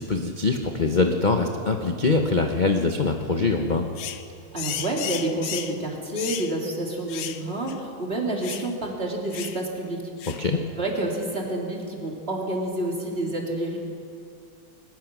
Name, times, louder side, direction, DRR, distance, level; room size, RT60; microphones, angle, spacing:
voice 1, 0.0-3.9 10.4-10.6, left 3 dB, 40° left, 4 dB, 0.7 m, -23 dB
sound 1, 4.0-4.2 4.6-5.8 6.2-6.5 7.1-7.4 7.7-7.8 8.4-8.7 9.3-9.6 10.2-10.5, left 10 dB, 90° left, 1.8 m, -33 dB
voice 2, 4.5-10.1 10.8-13.8, right 1 dB, 30° right, -1 dB, 3.2 m, -29 dB
21.5 x 20.5 x 6.1 m, 2.4 s
omnidirectional pair, 2.2 m